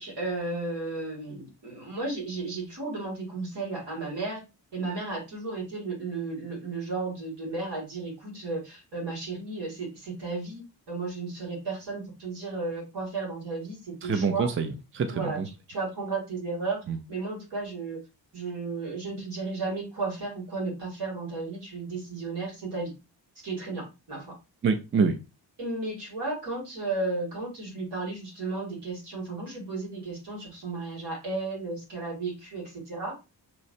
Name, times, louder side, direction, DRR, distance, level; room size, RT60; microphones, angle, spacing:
voice 1, 0.0-4.4 4.7-14.5 15.1-15.4 15.7-16.8 17.1-18.0 18.3-22.9 23.4-24.4 25.6-33.2, right 3 dB, 75° right, 2.4 m, -34 dB
voice 2, 14.0-15.5 16.9-17.0 24.6-25.2, right 5 dB, 30° right, 0.4 m, -26 dB
5.6 x 3.1 x 2.6 m
wide cardioid pair, 175°, 42 cm